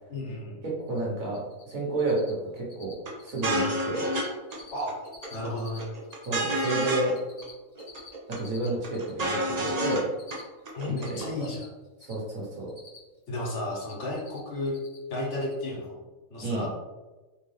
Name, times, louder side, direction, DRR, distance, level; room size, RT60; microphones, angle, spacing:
voice 1, 0.1-0.6 4.7-4.9 5.3-5.9 10.7-11.7 13.3-14.8 15.1-16.0 16.3-16.7, left 1 dB, 60° left, -3 dB, 1.3 m, -33 dB
voice 2, 0.6-2.9 3.2-4.1 6.3-7.1 8.3-10.1 11.1-11.2 12.1-12.7 16.4-16.7, right 2 dB, 75° right, -4 dB, 1.6 m, -30 dB
Cricket, 0.9-1.0 1.2-1.7 2.0-2.3 2.6-2.9 3.2-3.5 3.7-4.3 4.5-5.8 6.0-9.3 9.6-12.1 12.4-13.2 13.5-14.4 14.7-15.0 15.2-15.5, left 4 dB, 90° left, 1.8 m, -49 dB
sound 1, 3.1-3.2 3.4-4.3 4.5-4.6 4.9-5.5 5.8-7.1 7.4-7.5 7.8-8.4 8.7-10.0 10.3-10.4 10.7-11.3, right 1 dB, 40° right, 0.6 m, -29 dB
3.9 x 3.2 x 3.2 m, 1.2 s
omnidirectional pair, 1.4 m